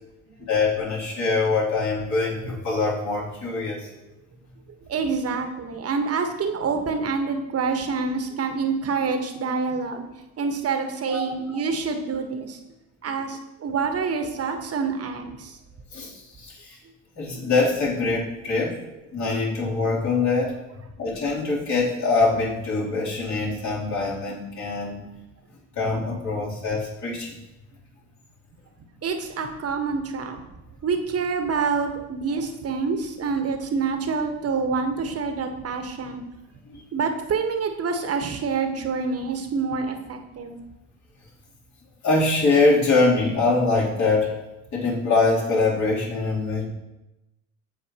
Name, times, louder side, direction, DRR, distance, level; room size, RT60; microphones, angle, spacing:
voice 1, 0.5-3.9 11.1-11.2 15.9-16.8 17.2-18.8 19.1-20.6 21.0-25.0 25.7-27.4 36.7-36.8 42.0-44.4 44.7-46.7, left 3 dB, 50° left, -4 dB, 3.3 m, -23 dB
voice 2, 4.9-10.1 10.4-12.6 13.0-15.6 17.3-17.5 29.0-30.4 30.8-36.2 36.9-40.6, right 5 dB, 40° right, 5 dB, 1.4 m, -27 dB
15.0 x 5.1 x 3.0 m, 0.97 s
hypercardioid pair, 60°, 36 cm